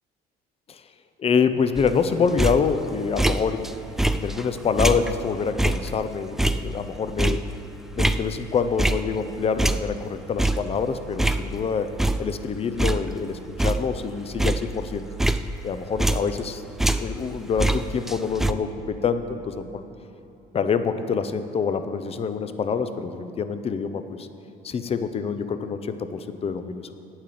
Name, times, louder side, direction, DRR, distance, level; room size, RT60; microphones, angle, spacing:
voice 1, 1.2-3.7 4.1-7.4 7.9-11.9 12.2-15.1 15.6-16.6 16.9-19.9 20.5-24.3 24.6-26.9, left 6 dB, 35° left, 10 dB, 0.6 m, -26 dB
sound 1, 1.8-3.7 4.0-9.3 9.6-11.7 12.0-12.5 12.8-16.5 16.8-18.5, right 1 dB, ahead, 0.3 m, -25 dB
8.7 x 8.7 x 7.7 m, 2.9 s
cardioid pair, 110°, 17 cm